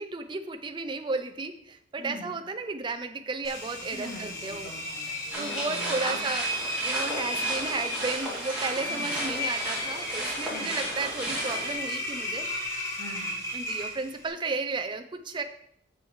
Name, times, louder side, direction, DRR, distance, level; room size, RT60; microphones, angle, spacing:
voice 1, 0.0-4.7 5.4-6.5 6.8-12.5 13.5-15.4, right 3 dB, 25° right, 7 dB, 0.4 m, -33 dB
Engine, 3.4-14.3, equal, 15° left, 1.4 m, -34 dB
voice 2, 3.9-6.2 8.8-9.1 10.5-10.7 13.0-13.4, equal, 65° left, -10 dB, 2.7 m, -42 dB
sound 1, 5.3-11.7, right 1 dB, 5° right, 2.4 m, -34 dB
8.1 x 6.3 x 3.1 m, 0.70 s
head